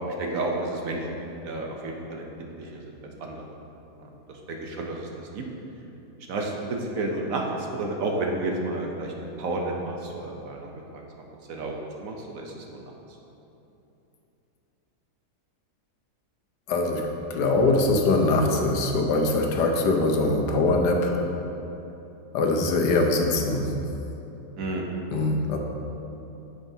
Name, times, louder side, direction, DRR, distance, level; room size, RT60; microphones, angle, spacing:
voice 1, 0.1-1.2 1.4-2.9 3.2-3.4 4.0-5.4 6.3-11.0 11.5-12.8 24.6-24.9, right 2 dB, 60° right, 0 dB, 1.1 m, -31 dB
voice 2, 16.7-17.0 17.3-21.2 22.3-23.7 25.1-25.6, left 2 dB, 85° left, 2 dB, 1.4 m, -22 dB
9.0 x 7.0 x 2.7 m, 3.0 s
omnidirectional pair, 1.8 m